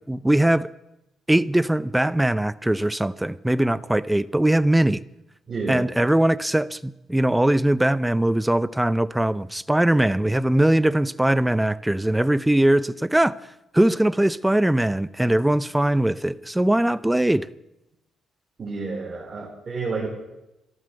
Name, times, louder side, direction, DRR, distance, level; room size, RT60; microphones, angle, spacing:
voice 1, 0.1-0.7 1.3-5.0 5.7-13.3 13.7-17.5, right 1 dB, 10° right, 0.6 m, -21 dB
voice 2, 5.5-5.9 18.6-20.1, right 4 dB, 40° right, 3.6 m, -30 dB
13.0 x 12.5 x 7.8 m
cardioid pair, 90°, 0 cm